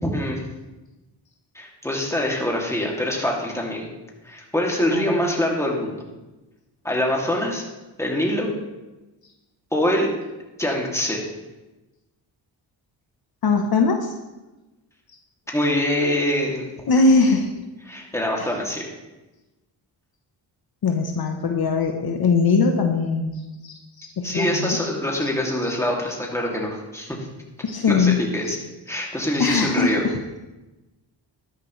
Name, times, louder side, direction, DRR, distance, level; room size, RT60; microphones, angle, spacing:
voice 1, 0.0-0.4 1.5-3.9 4.2-6.0 6.8-7.6 8.0-8.5 9.7-10.1 10.6-11.2 15.5-16.7 17.9-18.8 24.2-27.2 27.9-28.6 28.9-30.0, left 1 dB, 5° left, -1 dB, 2.6 m, -24 dB
voice 2, 13.4-14.1 16.9-17.5 18.4-18.5 20.8-24.8 27.6-28.2 29.4-30.2, left 4 dB, 55° left, 4 dB, 1.0 m, -21 dB
12.5 x 10.5 x 3.2 m, 1.1 s
cardioid pair, 85°, 45 cm